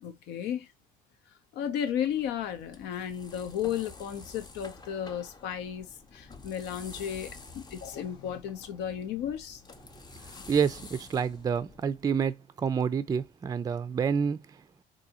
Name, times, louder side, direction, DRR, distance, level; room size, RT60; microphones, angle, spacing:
voice 1, 0.0-0.7 1.5-9.6, left 9 dB, 85° left, 0.7 m, -34 dB
sound 1, 1.9-12.2, left 3 dB, 25° left, 0.6 m, -49 dB
voice 2, 10.5-14.5, right 6 dB, 20° right, 0.4 m, -28 dB
3.8 x 2.7 x 2.8 m
cardioid pair, 110°, 17 cm